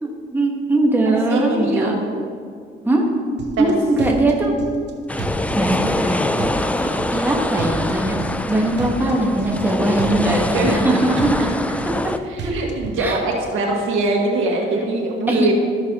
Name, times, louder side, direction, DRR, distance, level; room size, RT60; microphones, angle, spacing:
voice 1, 0.0-1.9 2.8-3.0 3.6-4.5 5.5-8.2 8.5-11.4 11.8-12.1 12.4-12.5 13.0-13.2 15.3-15.5, right 2 dB, 10° right, -1 dB, 1.3 m, -20 dB
voice 2, 1.3-2.1 3.6-3.7 10.5-10.8 12.3-15.5, right 2 dB, 85° right, 0 dB, 1.7 m, -22 dB
sound 1, 3.4-3.7 4.0-4.9 5.2-6.1 6.4-7.3 7.6-8.5 8.8-9.7 10.0-10.9 11.2-12.1 12.4-13.0, right 3 dB, 60° right, 1.0 m, -31 dB
sound 2, 5.1-12.2, left 1 dB, 5° left, 0.3 m, -24 dB
13.5 x 6.3 x 2.9 m, 2.1 s
cardioid pair, 90°, 20 cm